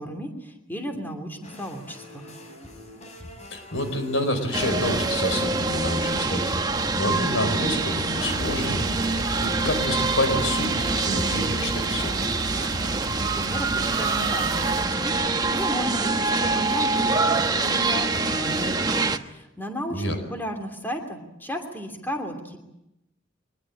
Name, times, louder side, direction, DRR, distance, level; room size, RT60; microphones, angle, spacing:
voice 1, 0.0-2.2 13.3-22.6, equal, 10° left, 4 dB, 2.9 m, -34 dB
Ableton Live rock garage jam, 1.4-13.2, equal, 35° left, 4.4 m, -44 dB
voice 2, 3.5-8.8 9.4-12.1 19.9-20.3, left 1 dB, 85° left, 8 dB, 4.9 m, -28 dB
sound 1, 4.5-19.2, right 3 dB, 20° right, 1.1 m, -25 dB
sound 2, 8.2-14.9, right 2 dB, 85° right, 1.5 m, -35 dB
24.0 x 20.5 x 8.7 m, 0.87 s
head